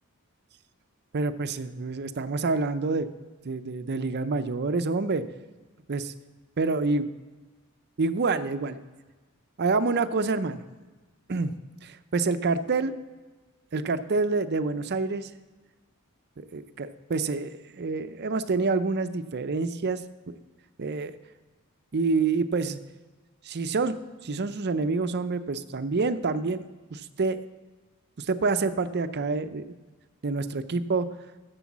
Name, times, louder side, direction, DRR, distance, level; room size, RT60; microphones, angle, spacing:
voice 1, 1.1-3.1 3.4-5.2 5.9-6.1 6.6-7.1 8.0-8.8 9.6-10.6 11.3-11.5 11.8-12.9 13.7-15.3 16.5-20.0 20.3-20.4 20.8-21.1 21.9-22.8 23.4-24.0 24.2-26.6 26.9-27.4 28.2-29.6 30.2-31.1, right 3 dB, 50° right, 11 dB, 0.6 m, -27 dB
11.0 x 6.9 x 7.2 m, 1.3 s
head